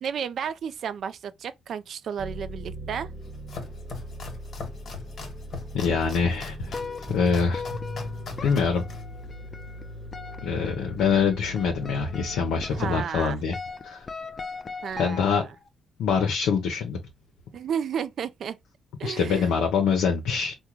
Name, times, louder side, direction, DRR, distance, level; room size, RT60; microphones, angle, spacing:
voice 1, 0.0-3.1 12.7-13.4 14.8-15.4 17.5-18.6 19.0-19.5, right 7 dB, 60° right, 0.3 m, -32 dB
sound 1, 2.2-13.0, left 1 dB, 25° right, 1.0 m, -39 dB
Domestic sounds home sounds, 3.1-10.1, left 4 dB, 55° left, 1.2 m, -41 dB
voice 2, 5.7-7.6 8.4-8.8 10.4-13.6 13.8-14.1 15.0-15.4 16.0-17.0 19.0-20.5, left 6 dB, 85° left, 0.6 m, -25 dB
sound 2, 6.7-15.7, left 4 dB, 35° left, 0.4 m, -40 dB
3.6 x 2.1 x 2.9 m
cardioid pair, 90°, 0 cm